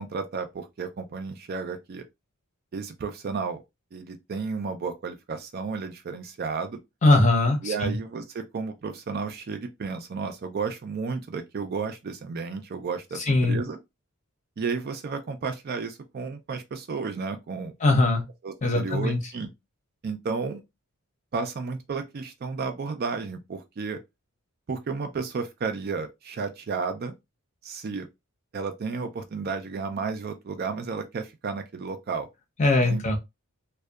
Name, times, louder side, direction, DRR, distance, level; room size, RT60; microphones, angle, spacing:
voice 1, 0.0-2.0 2.7-3.6 3.9-6.8 7.6-13.8 14.6-17.7 18.4-19.5 20.0-20.6 21.3-24.0 24.7-27.1 27.6-28.1 28.5-32.3 32.8-33.2, right 4 dB, 45° right, 0.4 m, -32 dB
voice 2, 7.0-8.0 13.3-13.6 17.8-18.2 18.6-19.2 32.6-33.2, left 2 dB, 30° left, 0.6 m, -21 dB
2.7 x 2.1 x 2.3 m
head